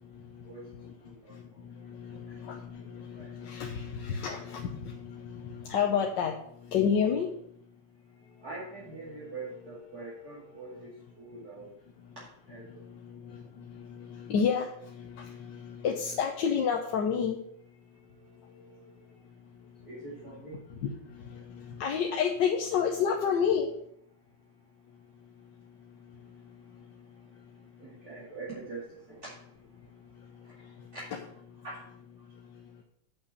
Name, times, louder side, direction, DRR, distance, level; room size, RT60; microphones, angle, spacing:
voice 1, 0.5-0.9 1.3-6.3 6.7-7.3 12.8-17.4 21.1-23.7, left 7 dB, 65° left, 2 dB, 1.5 m, -30 dB
voice 2, 1.0-1.8 2.0-2.4 2.8-3.3 8.2-11.8 12.5-12.8 17.9-19.1 19.8-20.6 27.8-29.3 30.4-30.5 30.9-31.0 31.6-31.8, right 3 dB, 45° right, -8 dB, 2.8 m, -45 dB
8.0 x 6.0 x 6.6 m, 0.70 s
omnidirectional pair, 2.2 m